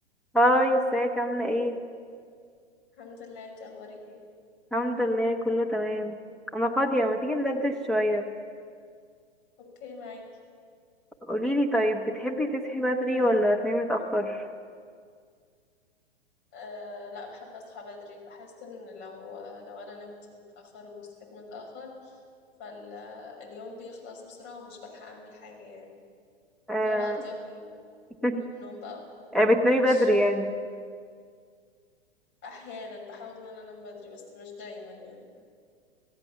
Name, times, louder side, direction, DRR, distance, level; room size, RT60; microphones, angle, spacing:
voice 1, 0.3-1.8 4.7-6.2 6.5-8.3 11.2-14.4 26.7-27.2 28.2-28.5 29.3-30.5, equal, ahead, 0 dB, 1.4 m, -25 dB
voice 2, 3.0-4.2 9.6-10.2 16.5-22.2 22.6-25.9 26.8-27.8 28.2-30.1 32.4-35.4, left 3 dB, 35° left, 0 dB, 6.3 m, -43 dB
26.5 x 16.0 x 7.2 m, 2.1 s
figure-of-eight pair, 110°, 33 cm